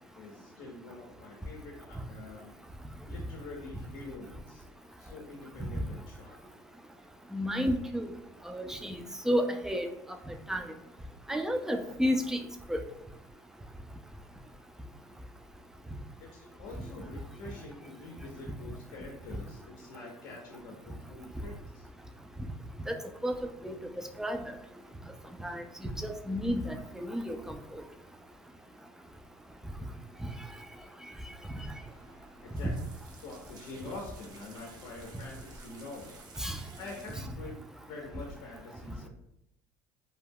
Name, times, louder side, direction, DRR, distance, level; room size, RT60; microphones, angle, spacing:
voice 1, 0.1-2.5 3.1-4.6 5.0-6.4 16.2-21.9 32.4-36.2 36.8-39.1, left 3 dB, 75° left, 0 dB, 0.5 m, -46 dB
voice 2, 7.3-8.1 8.5-9.0 9.3-9.9 10.5-10.6 11.3-12.4 12.7-12.8 22.9-23.0 23.2-23.3 23.6-23.8 24.2-24.4 25.4-25.6 26.0-27.8 36.4-36.6, equal, 5° right, 5 dB, 0.3 m, -31 dB
sound 1, 31.4-37.2, right 3 dB, 50° right, 0.6 m, -53 dB
2.2 x 2.0 x 3.4 m, 0.80 s
supercardioid pair, 95°, 8 cm